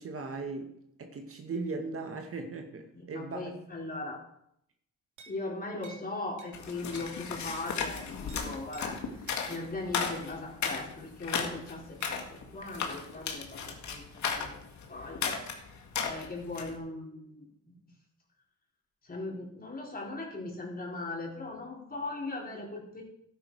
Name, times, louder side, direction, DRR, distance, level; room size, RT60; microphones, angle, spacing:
voice 1, 0.0-3.6, right 3 dB, 45° right, 4 dB, 2.0 m, -38 dB
voice 2, 2.9-4.2 5.3-12.2 12.5-14.6 14.9-15.4 16.0-17.8 19.0-23.0, left 2 dB, 30° left, -1 dB, 4.3 m, -39 dB
sound 1, 5.2-5.4 5.8-6.0 6.4-6.5 6.9-7.1 7.4-7.6 7.9-8.4 8.7-8.9 9.3-9.4 10.1-10.3 12.0-12.2, right 4 dB, 75° right, 3.0 m, -51 dB
sound 2, 6.5-16.8, left 6 dB, 70° left, 2.3 m, -35 dB
12.5 x 10.0 x 4.9 m, 0.74 s
cardioid pair, 90°, 30 cm